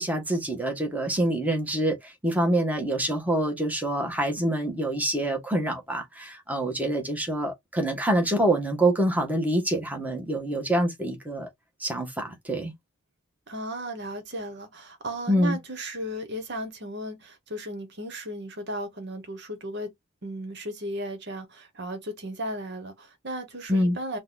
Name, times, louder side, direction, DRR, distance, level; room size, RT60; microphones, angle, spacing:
voice 1, 0.0-11.5 11.8-12.7 15.3-15.6 23.7-24.0, right 1 dB, 5° right, 1.3 m, -26 dB
voice 2, 13.5-19.9 20.2-24.2, right 1 dB, 50° right, 1.2 m, -35 dB
4.0 x 2.2 x 3.9 m
head